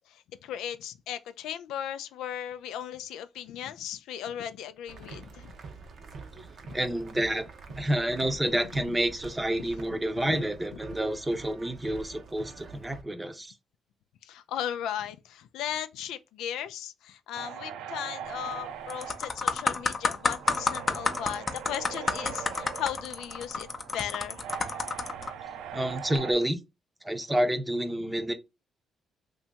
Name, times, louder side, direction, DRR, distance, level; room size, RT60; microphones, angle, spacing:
voice 1, 0.1-5.6 6.7-6.8 8.9-9.0 10.3-10.4 14.2-24.4 28.0-28.1, left 10 dB, 90° left, 0.3 m, -37 dB
sound 1, 4.9-13.0, right 4 dB, 60° right, 0.7 m, -46 dB
voice 2, 6.7-7.5 7.8-13.5 25.7-26.6 27.0-28.3, right 1 dB, 15° right, 0.7 m, -29 dB
sound 2, 17.3-26.3, right 9 dB, 90° right, 0.4 m, -41 dB
sound 3, 18.3-18.5 18.9-25.3 26.0-26.2, left 4 dB, 35° left, 0.6 m, -30 dB
2.8 x 2.6 x 3.4 m
cardioid pair, 90°, 0 cm